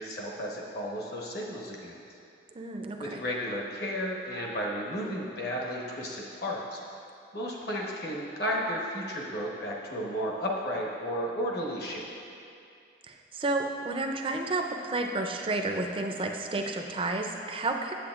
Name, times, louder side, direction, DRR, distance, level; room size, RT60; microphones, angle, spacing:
voice 1, 0.0-2.0 3.0-6.8 7.3-12.1, equal, 55° left, -3 dB, 1.1 m, -33 dB
voice 2, 2.5-3.2 13.1-17.9, right 2 dB, 25° right, 3 dB, 0.4 m, -31 dB
8.6 x 8.3 x 2.4 m, 2.5 s
head